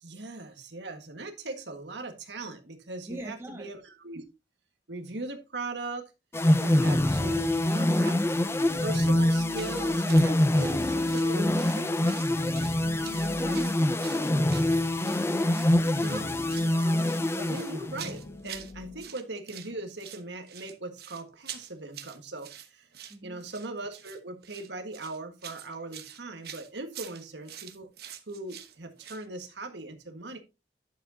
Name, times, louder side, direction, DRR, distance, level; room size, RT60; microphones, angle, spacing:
voice 1, 0.0-4.2 4.9-6.0 6.6-8.2 8.7-12.3 13.5-13.7 15.9-17.1 17.4-22.9 23.2-27.9 28.3-30.4, right 2 dB, 80° right, 1.6 m, -40 dB
voice 2, 3.1-3.7 6.6-7.0 12.8-14.9 23.1-23.4, right 1 dB, 15° right, 1.7 m, -43 dB
sound 1, 6.3-18.2, left 1 dB, 15° left, 0.4 m, -25 dB
sound 2, 8.2-19.2, left 2 dB, 65° left, 1.0 m, -47 dB
sound 3, 9.5-9.8 10.1-10.3 10.6-11.8 12.1-12.8 13.0-15.2 15.5-15.7 16.0-16.7 17.0-18.7 19.0-19.7 20.0-29.3, right 10 dB, 60° right, 1.1 m, -45 dB
11.0 x 7.1 x 2.8 m
head